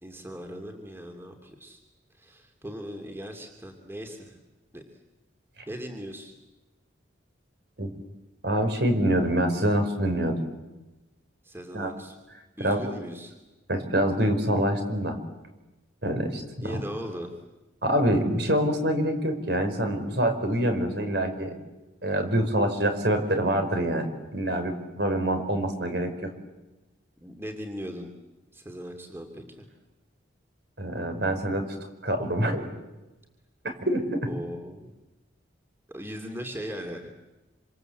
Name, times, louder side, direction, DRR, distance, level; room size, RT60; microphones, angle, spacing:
voice 1, 0.0-1.8 2.2-4.4 4.7-4.8 5.7-6.3 11.4-12.2 12.6-13.3 16.6-17.3 27.2-28.1 28.5-29.6 34.3-34.9 35.9-37.1, equal, 10° right, 4 dB, 2.8 m, -38 dB
voice 2, 8.4-10.4 11.7-11.9 12.6-12.8 13.7-15.2 16.0-16.8 17.8-21.6 22.0-26.3 30.8-31.7 32.0-32.7 33.6-34.3, right 1 dB, 60° right, 7 dB, 4.8 m, -26 dB
27.5 x 26.5 x 8.0 m, 1.1 s
head